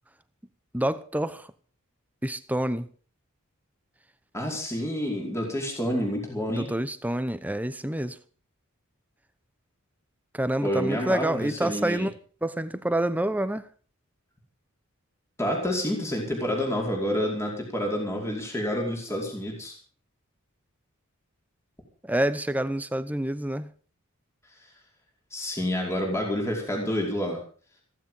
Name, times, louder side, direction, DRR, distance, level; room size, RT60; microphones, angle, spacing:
voice 1, 0.7-1.5 2.2-2.9 6.5-8.2 10.3-12.1 12.4-13.7 22.0-23.7, right 1 dB, 5° right, 0.8 m, -27 dB
voice 2, 4.3-6.7 10.6-12.1 15.4-19.7 25.3-27.4, equal, 15° left, 4.9 m, -28 dB
16.0 x 15.0 x 5.6 m
head